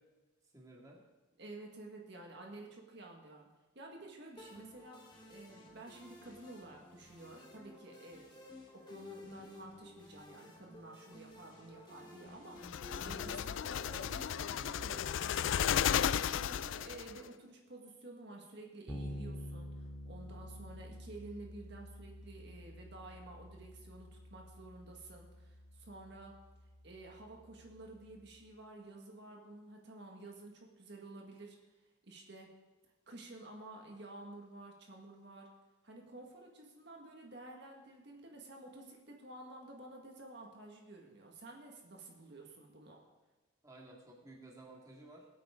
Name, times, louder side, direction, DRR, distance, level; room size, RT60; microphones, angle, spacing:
voice 1, 0.5-1.0 43.6-45.3, right 2 dB, 15° right, -2 dB, 2.0 m, -55 dB
voice 2, 1.4-3.5 3.7-8.3 8.7-26.4 26.8-31.6 32.0-32.5 33.1-35.5 35.8-43.0, right 2 dB, 55° right, 0 dB, 1.8 m, -52 dB
sound 1, 4.4-17.4, left 2 dB, 20° left, 2.3 m, -54 dB
sound 2, 12.6-17.2, left 9 dB, 65° left, 0.3 m, -34 dB
Bass guitar, 18.9-28.5, equal, 5° left, 2.2 m, -49 dB
21.5 x 8.8 x 3.8 m, 1.2 s
head